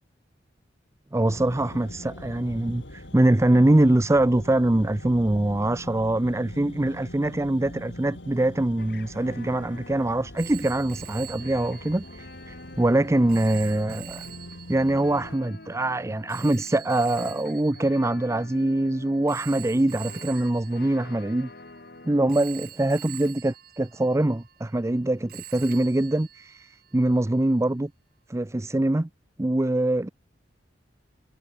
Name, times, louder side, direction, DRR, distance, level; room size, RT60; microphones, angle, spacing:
voice 1, 1.1-14.2 14.7-21.5 22.0-27.9 28.3-29.1 29.4-30.1, right 1 dB, 15° right, 0.5 m, -23 dB
sound 1, 1.2-15.4, left 1 dB, 85° left, 4.9 m, -43 dB
sound 2, 8.8-22.4, left 2 dB, 60° left, 4.5 m, -47 dB
Telephone, 10.4-18.7 19.3-21.8 22.3-25.0 25.3-27.0, right 12 dB, 55° right, 1.3 m, -45 dB
head